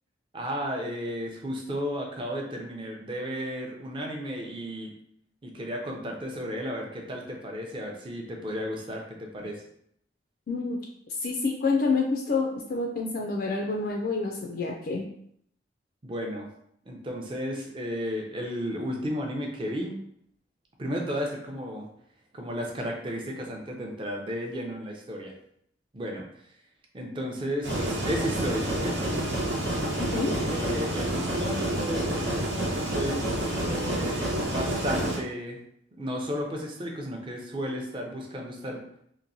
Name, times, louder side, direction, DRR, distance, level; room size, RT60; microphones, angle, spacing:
voice 1, 0.3-4.9 5.4-9.7 16.0-16.5 16.8-20.0 20.8-21.9 22.3-25.4 25.9-26.2 26.9-29.1 30.5-32.5 32.9-35.6 36.0-38.8, equal, 30° right, 1 dB, 0.5 m, -33 dB
voice 2, 10.5-10.8 11.2-15.0 30.0-30.4, left 3 dB, 50° left, 1 dB, 0.3 m, -28 dB
sound 1, 27.6-35.2, right 1 dB, 75° right, 0.9 m, -28 dB
2.9 x 2.6 x 2.6 m, 0.70 s
head